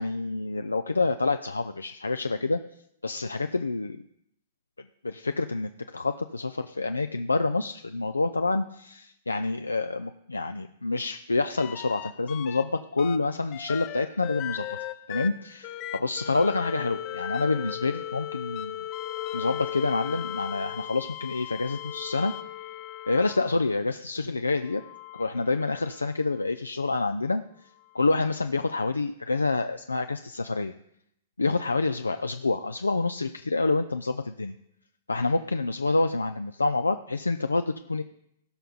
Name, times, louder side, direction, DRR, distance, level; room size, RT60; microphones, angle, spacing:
voice 1, 0.0-2.6 3.0-4.0 5.0-14.8 15.1-18.8 19.3-22.3 23.1-24.8 25.2-27.4 27.9-30.7 31.4-34.5 35.1-38.0, left 3 dB, 90° left, 9 dB, 0.4 m, -27 dB
sound 1, 11.6-12.6 13.0-23.8 24.6-26.2 27.9-28.0, left 12 dB, 35° left, 0.6 m, -37 dB
17.0 x 5.6 x 3.9 m, 0.75 s
figure-of-eight pair, 110°, 0 cm